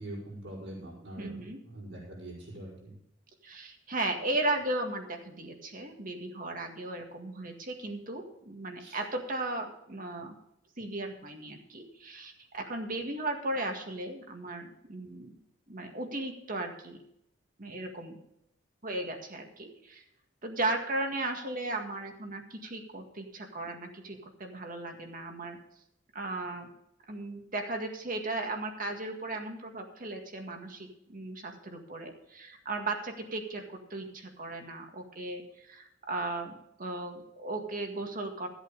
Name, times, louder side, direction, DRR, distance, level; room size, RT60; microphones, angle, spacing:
voice 1, 0.0-1.3 1.6-2.9 8.8-9.0, right 1 dB, 75° right, -7 dB, 5.1 m, -43 dB
voice 2, 1.2-1.6 3.4-10.3 10.8-15.3 15.7-17.0 17.6-18.1 18.8-20.0 20.4-25.6 26.1-26.7 27.1-33.6 33.9-38.5, right 2 dB, 45° right, 4 dB, 1.9 m, -36 dB
14.0 x 8.1 x 5.2 m, 0.77 s
head